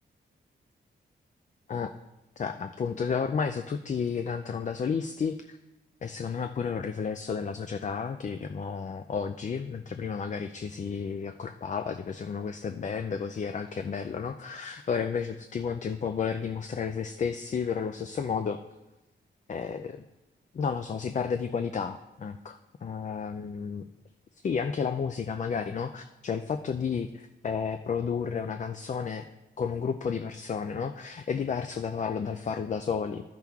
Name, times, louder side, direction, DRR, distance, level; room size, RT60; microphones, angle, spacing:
voice 1, 2.4-5.6 6.0-18.6 19.5-20.0 20.5-23.8 24.4-29.3 29.6-33.2, left 6 dB, 40° left, 8 dB, 0.4 m, -32 dB
12.5 x 5.9 x 3.5 m, 1.0 s
cardioid pair, 100°, 20 cm